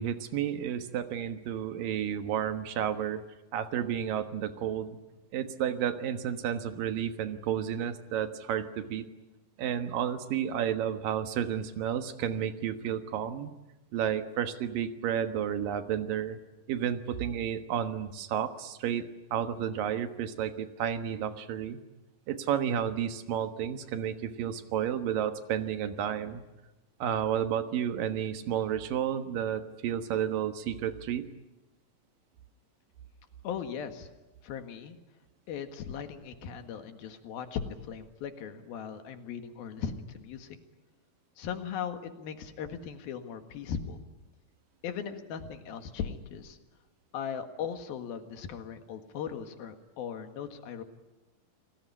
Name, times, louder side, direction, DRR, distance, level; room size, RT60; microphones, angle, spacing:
voice 1, 0.0-3.2 3.5-4.9 5.3-9.0 9.6-13.5 13.9-16.4 16.7-19.0 19.3-21.8 22.3-26.4 27.0-31.3, right 9 dB, 70° right, 8 dB, 3.0 m, -31 dB
voice 2, 33.4-34.1 34.4-35.0 35.5-40.6 41.4-44.0 44.8-46.6 47.1-50.8, left 7 dB, 85° left, 7 dB, 3.6 m, -38 dB
29.0 x 19.5 x 9.7 m, 1.1 s
omnidirectional pair, 4.1 m